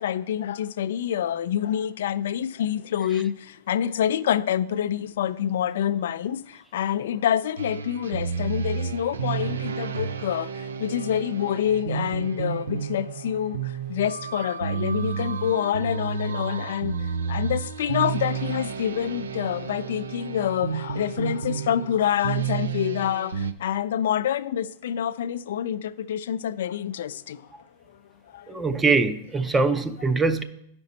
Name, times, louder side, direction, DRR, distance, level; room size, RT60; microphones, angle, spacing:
voice 1, 0.0-27.5 28.3-28.6, left 10 dB, 75° left, 0.3 m, -27 dB
sound 1, 7.6-23.5, right 6 dB, 90° right, 0.5 m, -31 dB
voice 2, 28.5-30.4, right 4 dB, 15° right, 0.6 m, -22 dB
10.5 x 5.2 x 4.0 m
hypercardioid pair, 120°, 0 cm